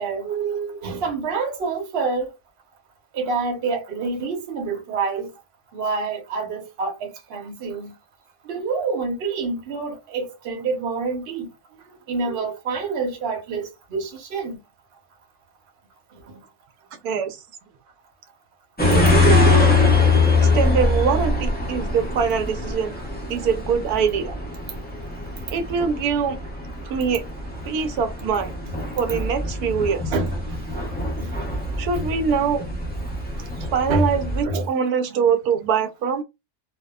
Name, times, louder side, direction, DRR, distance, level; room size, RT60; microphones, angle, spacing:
voice 1, 0.0-2.3 3.1-5.3 5.7-7.9 8.4-11.5 12.1-14.6 30.1-30.8 31.2-31.4 31.9-32.2 33.4-33.5 33.9-34.1 34.4-34.7, right 4 dB, 50° right, 0.9 m, -27 dB
voice 2, 17.0-17.4 19.0-19.7 20.5-22.9 23.3-24.4 25.5-26.4 26.9-27.2 27.7-28.5 29.0-30.0 31.8-32.6 33.7-36.2, right 6 dB, 85° right, 1.1 m, -23 dB
sound 1, 18.8-34.4, left 3 dB, 15° left, 0.3 m, -23 dB
2.6 x 2.1 x 2.2 m
omnidirectional pair, 1.6 m